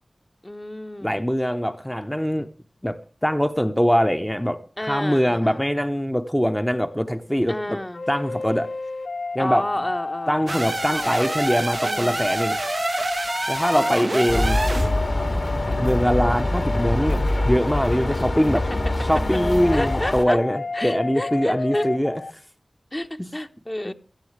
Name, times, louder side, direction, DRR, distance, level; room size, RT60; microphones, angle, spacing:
voice 1, 0.4-1.2 4.8-5.6 7.5-8.0 9.4-11.4 11.8-12.3 13.7-15.0 19.7-20.4 20.7-21.9 22.9-23.9, left 1 dB, 30° left, 1.1 m, -31 dB
voice 2, 1.0-2.5 2.8-7.8 8.1-8.7 9.3-9.7 10.3-12.6 13.5-14.6 15.8-18.6 19.0-22.2 23.2-23.3 23.9-24.0, equal, 5° left, 0.8 m, -23 dB
sound 1, 7.9-22.3, left 3 dB, 80° left, 0.5 m, -32 dB
sound 2, 10.5-14.9, right 2 dB, 55° right, 0.5 m, -27 dB
sound 3, 14.3-20.2, left 1 dB, 60° left, 2.4 m, -24 dB
17.0 x 12.5 x 3.3 m
wide cardioid pair, 50°, 0 cm